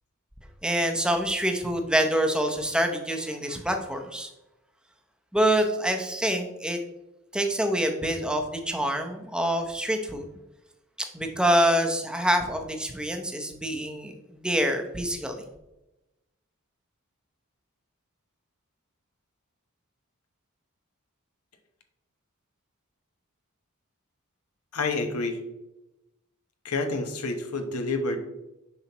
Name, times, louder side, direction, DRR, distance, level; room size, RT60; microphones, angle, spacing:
voice 1, 0.6-4.3 5.3-6.8 7.3-10.2 11.1-14.1 14.4-15.5, equal, 5° right, 4 dB, 0.7 m, -26 dB
voice 2, 24.7-25.4 26.6-28.3, left 3 dB, 90° left, 6 dB, 1.0 m, -29 dB
7.0 x 5.6 x 2.9 m, 0.96 s
head